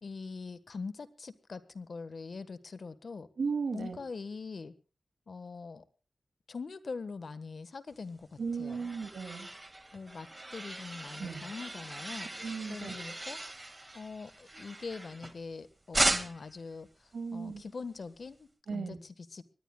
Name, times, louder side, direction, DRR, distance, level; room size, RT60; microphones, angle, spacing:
voice 1, 0.0-3.3 3.7-4.7 5.3-5.8 6.5-8.9 9.9-12.3 12.7-13.4 13.9-19.4, left 4 dB, 65° left, 13 dB, 1.3 m, -43 dB
voice 2, 3.4-4.0 8.4-9.5 11.2-11.4 12.4-13.0 17.1-17.6 18.7-19.0, right 5 dB, 80° right, 7 dB, 2.4 m, -36 dB
sound 1, 8.2-15.5 15.9-16.6, right 2 dB, 25° right, 1.9 m, -37 dB
24.5 x 19.5 x 2.3 m, 0.33 s
cardioid pair, 60°, 0 cm